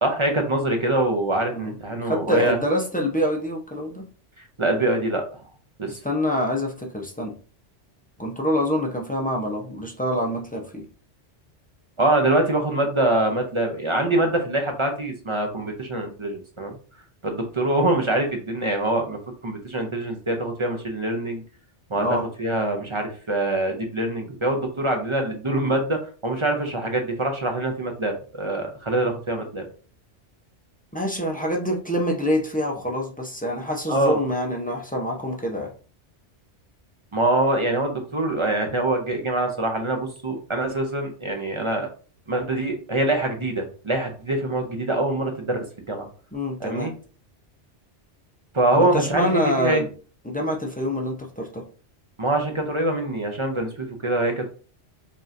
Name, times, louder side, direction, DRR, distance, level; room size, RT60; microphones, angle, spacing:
voice 1, 0.0-2.6 4.6-5.2 5.8-5.9 12.0-16.7 17.2-21.4 21.9-29.6 33.9-34.2 37.1-41.9 42.3-46.1 46.6-46.9 48.5-49.8 52.2-54.5, right 1 dB, 30° right, 3 dB, 0.6 m, -24 dB
voice 2, 2.0-4.0 5.9-7.3 8.2-10.9 21.9-22.3 30.9-35.7 46.3-47.0 48.7-49.9 50.2-51.7, equal, 10° left, 0 dB, 0.4 m, -26 dB
5.2 x 2.8 x 2.5 m, 0.38 s
omnidirectional pair, 1.2 m